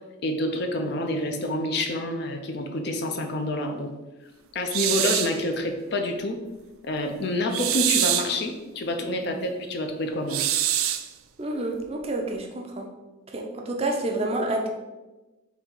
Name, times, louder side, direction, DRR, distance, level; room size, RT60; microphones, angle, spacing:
voice 1, 0.2-3.9 4.5-6.4 6.8-10.5, left 1 dB, 55° left, 4 dB, 0.5 m, -28 dB
sound 1, 4.7-5.4 7.5-8.4 10.3-11.1, right 11 dB, 90° right, 0.3 m, -24 dB
voice 2, 11.4-12.9 13.3-14.7, right 2 dB, 30° right, 1 dB, 0.5 m, -28 dB
4.0 x 2.9 x 4.4 m, 1.1 s
head